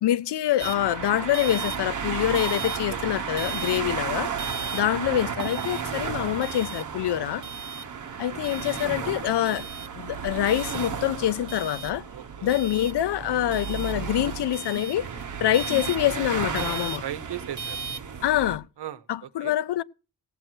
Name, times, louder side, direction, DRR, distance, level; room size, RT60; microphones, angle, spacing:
voice 1, 0.0-4.3 4.7-7.4 8.2-9.6 9.9-12.0 12.4-15.1 15.4-17.0 18.2-18.7 19.1-19.8, left 12 dB, 85° left, 0.6 m, -25 dB
sound 1, 0.6-18.6, right 6 dB, 50° right, 1.2 m, -33 dB
voice 2, 12.1-12.6 17.0-17.8 18.8-19.5, right 10 dB, 85° right, 1.0 m, -38 dB
sound 2, 13.1-14.1 14.5-15.3 15.6-16.1, left 3 dB, 40° left, 3.8 m, -44 dB
17.5 x 7.7 x 4.5 m
wide cardioid pair, 155°, 40 cm